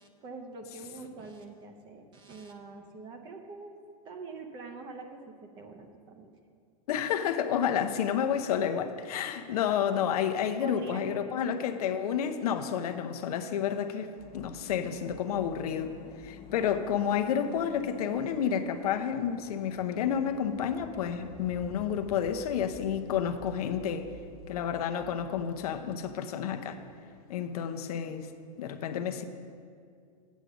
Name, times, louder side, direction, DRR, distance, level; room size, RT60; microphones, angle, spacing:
voice 1, 0.0-3.8 4.0-6.3 10.6-11.2 11.5-11.8, right 3 dB, 25° right, 0.7 m, -44 dB
voice 2, 6.9-16.0 16.2-24.1 24.5-26.8 27.3-28.3 28.6-29.2, left 8 dB, 70° left, 0.7 m, -30 dB
sound 1, 14.2-26.6 26.9-27.0, left 3 dB, 20° left, 0.6 m, -50 dB
8.2 x 7.9 x 6.1 m
supercardioid pair, 165°, 20 cm